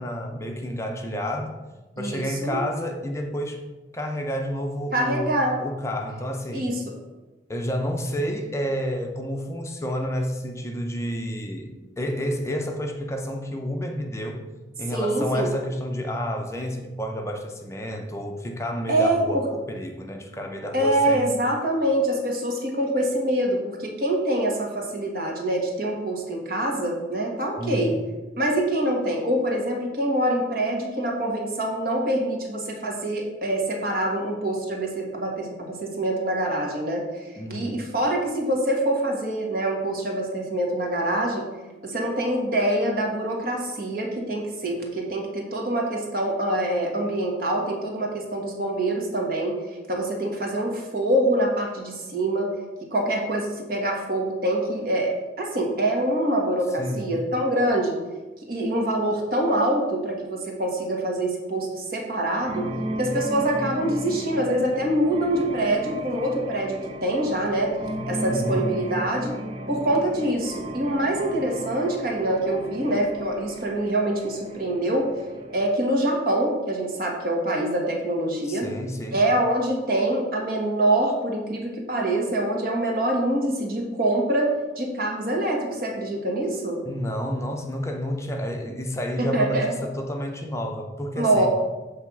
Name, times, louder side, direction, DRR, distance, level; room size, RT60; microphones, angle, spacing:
voice 1, 0.0-1.6 2.0-3.6 3.9-6.7 7.5-14.4 14.8-21.3 27.6-27.8 37.4-37.8 56.8-57.1 68.2-68.7 78.5-79.2 86.8-91.5, equal, 15° left, 0.5 m, -30 dB
voice 2, 2.0-2.6 4.9-5.6 6.5-6.8 14.9-15.5 18.9-19.5 20.7-28.0 28.4-37.0 37.5-41.5 41.8-49.6 49.9-52.5 52.9-58.0 58.5-62.7 63.0-67.7 68.1-69.3 69.7-75.1 75.5-78.7 79.1-86.8 89.2-89.7 91.1-91.5, right 1 dB, 55° right, 1.5 m, -25 dB
sound 1, 62.4-75.7, right 1 dB, 30° right, 0.6 m, -35 dB
7.7 x 3.4 x 5.9 m
head